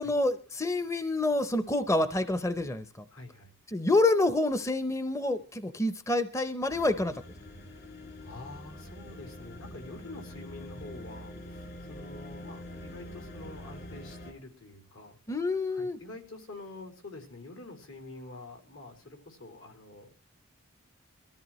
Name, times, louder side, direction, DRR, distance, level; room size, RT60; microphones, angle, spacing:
voice 1, 0.0-3.0 3.7-7.2 15.3-16.0, left 2 dB, 15° left, 11 dB, 0.6 m, -27 dB
voice 2, 3.1-3.5 7.5-7.9 8.2-15.2 15.7-20.1, left 2 dB, 75° left, 4 dB, 4.2 m, -47 dB
sound 1, 6.7-14.3, left 1 dB, 45° left, 2.5 m, -45 dB
22.5 x 14.0 x 3.1 m, 0.34 s
head